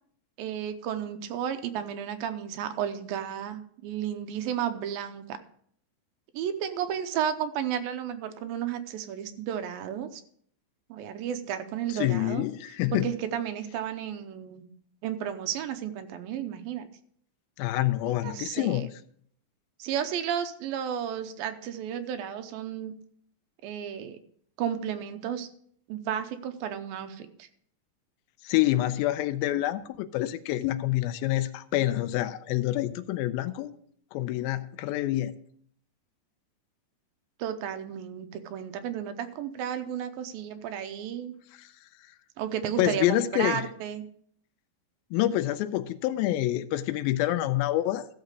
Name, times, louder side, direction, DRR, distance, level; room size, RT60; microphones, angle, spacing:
voice 1, 0.4-5.4 6.3-10.2 10.9-12.4 12.9-14.6 15.0-16.9 18.0-18.9 19.8-22.9 23.6-24.2 24.6-25.5 25.9-27.5 37.4-41.3 42.4-44.0, right 9 dB, 85° right, 2.6 m, -33 dB
voice 2, 11.9-13.1 17.6-18.9 28.4-33.7 34.1-35.3 41.6-41.7 42.8-43.6 45.1-48.1, left 14 dB, 90° left, 2.4 m, -27 dB
14.0 x 6.6 x 4.8 m
omnidirectional pair, 4.2 m